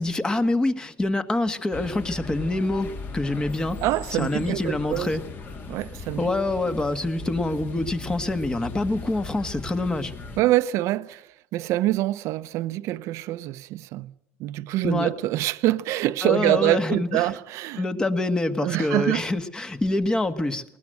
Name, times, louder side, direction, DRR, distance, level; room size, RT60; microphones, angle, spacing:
voice 1, 0.0-3.8 4.1-5.2 6.2-10.1 14.8-15.1 16.2-17.3 17.8-20.6, left 2 dB, 15° left, 1.5 m, -26 dB
sound 1, 1.7-10.4, left 4 dB, 40° left, 2.5 m, -38 dB
voice 2, 3.8-5.1 5.7-6.3 10.4-11.2 11.5-14.1 14.4-17.8 18.6-19.2, right 16 dB, 65° right, 0.9 m, -25 dB
20.0 x 19.5 x 7.8 m
cardioid pair, 130°, 5 cm